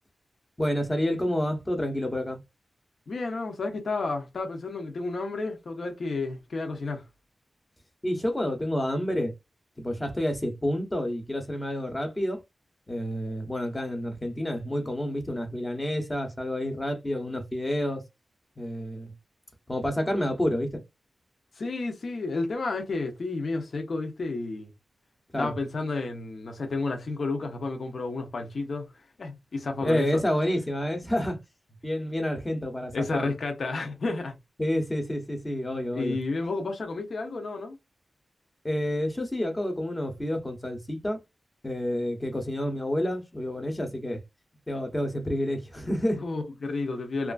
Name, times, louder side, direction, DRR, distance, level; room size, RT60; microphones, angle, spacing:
voice 1, 0.6-2.4 8.0-9.3 9.8-12.4 12.9-18.0 18.6-19.1 19.7-20.8 25.3-25.5 29.8-31.4 31.8-33.2 34.6-36.2 38.6-41.2 41.6-44.2 44.7-46.2, left 1 dB, 15° left, 0.7 m, -29 dB
voice 2, 3.1-7.0 21.6-24.7 25.4-28.9 29.2-30.2 32.9-34.4 35.9-37.8 46.2-47.3, left 3 dB, 60° left, 0.7 m, -31 dB
2.9 x 2.4 x 2.3 m
wide cardioid pair, 160°, 0 cm